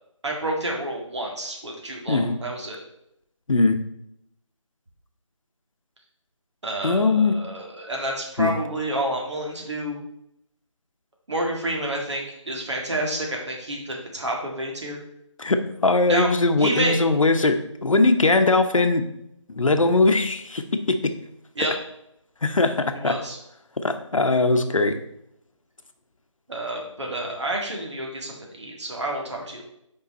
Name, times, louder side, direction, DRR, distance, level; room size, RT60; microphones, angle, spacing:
voice 1, 0.2-2.8 6.6-10.0 11.3-15.0 16.1-16.3 16.6-17.0 21.6-21.7 22.9-23.4 26.5-29.6, right 1 dB, 60° right, 0 dB, 1.9 m, -29 dB
voice 2, 3.5-3.8 6.8-7.4 8.4-8.5 15.4-19.0 19.5-21.1 22.4-23.1 23.8-25.0, left 3 dB, 90° left, 8 dB, 0.9 m, -20 dB
5.6 x 4.6 x 4.1 m, 0.77 s
figure-of-eight pair, 175°, 16 cm